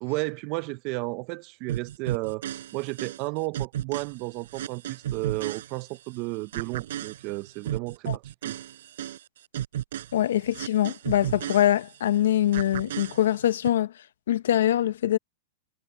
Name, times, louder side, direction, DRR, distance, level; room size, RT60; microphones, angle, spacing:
voice 1, 0.0-8.6, right 23 dB, 45° right, 0.8 m, -33 dB
sound 1, 1.7-6.2 6.5-12.2 12.5-13.7, right 12 dB, 80° right, 4.2 m, -35 dB
voice 2, 10.1-13.9 14.3-15.2, left 12 dB, 85° left, 1.0 m, -23 dB
hypercardioid pair, 135°, 0 cm